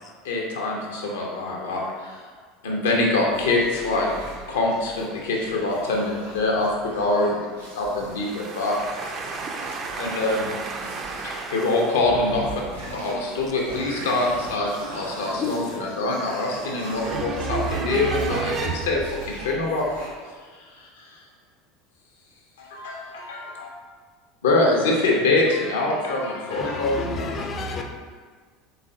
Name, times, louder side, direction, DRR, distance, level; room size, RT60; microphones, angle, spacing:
voice 1, 0.2-2.2 2.6-4.1 4.5-7.3 7.7-8.8 10.0-10.5 11.2-12.6 12.9-19.9 20.6-21.2 22.6-23.7 24.4-27.3, left 2 dB, 70° left, -1 dB, 0.7 m, -24 dB
sound 1, 3.2-20.1, right 1 dB, 85° right, 1.1 m, -40 dB
voice 2, 8.2-12.0 17.0-19.1, right 4 dB, 35° right, 2 dB, 0.5 m, -31 dB
voice 3, 12.9-13.3 15.3-15.6 26.5-27.8, left 3 dB, 35° left, 3 dB, 0.5 m, -31 dB
4.0 x 3.7 x 2.7 m, 1.6 s
figure-of-eight pair, 70°, 0 cm